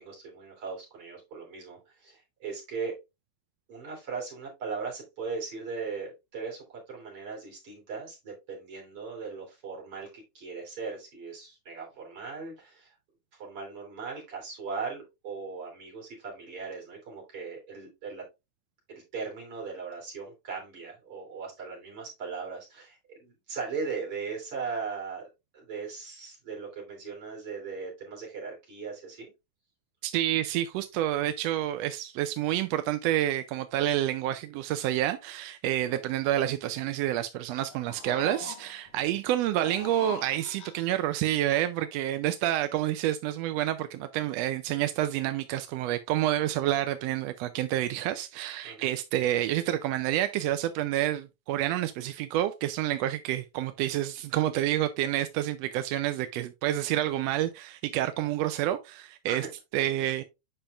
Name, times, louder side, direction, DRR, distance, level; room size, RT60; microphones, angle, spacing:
voice 1, 0.0-2.9 3.7-12.9 13.3-18.2 18.9-25.3 25.5-29.3 35.8-36.0 39.0-39.2 48.6-48.9 59.3-59.5 60.0-60.1, right 5 dB, 50° right, 4.1 m, -38 dB
voice 2, 30.0-59.5 59.7-60.2, right 13 dB, 75° right, 1.6 m, -28 dB
sound 1, 37.6-38.9 39.5-41.1, left 8 dB, 75° left, 3.1 m, -43 dB
8.8 x 5.7 x 2.5 m
omnidirectional pair, 3.3 m